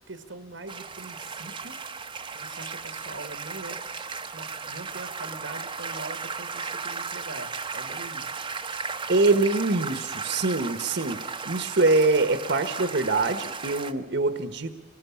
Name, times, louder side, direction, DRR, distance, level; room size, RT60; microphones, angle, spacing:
voice 1, 0.1-1.8 2.3-3.8 4.3-8.4 9.3-9.5, right 2 dB, 85° right, 9 dB, 1.7 m, -42 dB
sound 1, 0.7-13.9, right 5 dB, 25° right, 1.1 m, -35 dB
voice 2, 9.1-14.7, right 3 dB, 70° right, 8 dB, 1.5 m, -24 dB
25.5 x 20.5 x 8.6 m, 1.3 s
head